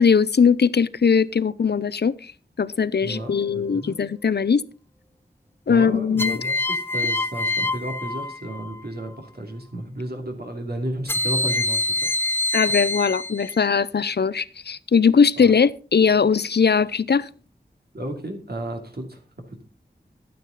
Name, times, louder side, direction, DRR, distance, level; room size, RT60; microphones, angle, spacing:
voice 1, 0.0-2.1 2.6-4.6 5.7-6.4 12.5-17.3, left 6 dB, 75° left, 18 dB, 0.6 m, -20 dB
voice 2, 3.0-3.9 5.7-12.1 15.4-15.5 17.9-19.2, right 1 dB, 65° right, 3 dB, 2.7 m, -33 dB
sound 1, 3.1-3.7 6.2-8.8 11.1-13.7, left 2 dB, 15° left, 0.6 m, -26 dB
11.5 x 9.2 x 4.0 m, 0.37 s
wide cardioid pair, 55°, 17 cm